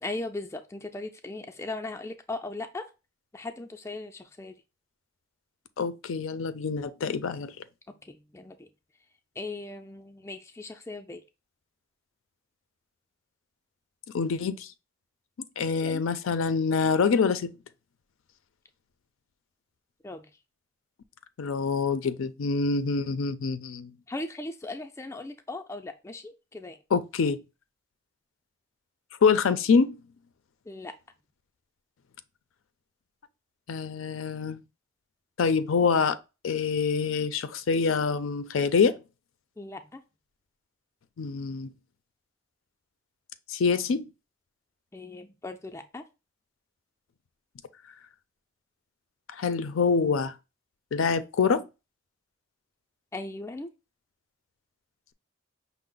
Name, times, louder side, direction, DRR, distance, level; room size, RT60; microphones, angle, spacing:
voice 1, 0.0-2.9 3.3-4.5 8.1-8.7 9.4-11.2 15.8-16.0 20.0-20.3 24.1-26.8 30.7-30.9 39.6-40.0 44.9-46.0 53.1-53.7, left 2 dB, 15° left, 0.3 m, -38 dB
voice 2, 5.8-7.5 14.1-14.7 15.6-17.5 21.4-23.9 26.9-27.4 29.2-30.0 33.7-34.6 35.4-36.2 36.4-39.0 41.2-41.7 43.5-44.0 49.4-50.3 50.9-51.6, left 5 dB, 85° left, 0.4 m, -25 dB
5.7 x 2.0 x 3.7 m
head